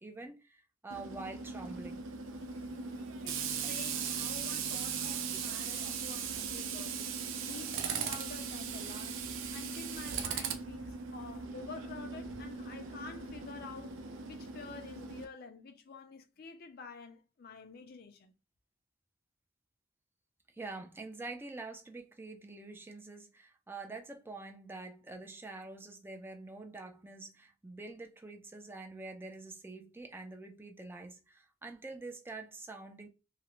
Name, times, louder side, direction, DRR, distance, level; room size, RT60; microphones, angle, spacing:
voice 1, 0.0-2.1 20.5-33.1, right 3 dB, 10° right, 0.4 m, -46 dB
Tools, 0.9-15.3, right 6 dB, 75° right, 0.4 m, -38 dB
voice 2, 3.2-7.2 7.4-9.2 9.5-18.3, left 4 dB, 50° left, 0.4 m, -49 dB
2.5 x 2.0 x 2.9 m
head